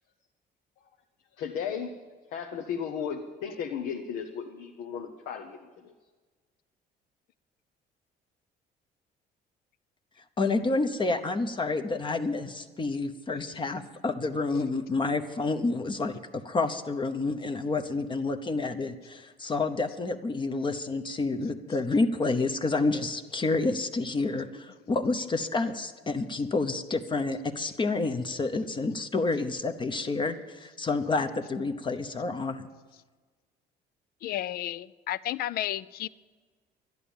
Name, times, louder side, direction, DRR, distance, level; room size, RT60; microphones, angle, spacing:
voice 1, 1.4-1.9 2.3-5.6 5.8-5.9, left 7 dB, 85° left, 3 dB, 1.0 m, -35 dB
voice 2, 10.4-32.7, left 3 dB, 30° left, 8 dB, 0.9 m, -29 dB
voice 3, 34.2-36.1, left 13 dB, 65° left, 18 dB, 0.5 m, -32 dB
12.0 x 11.0 x 7.1 m, 1.4 s
cardioid pair, 110°, 17 cm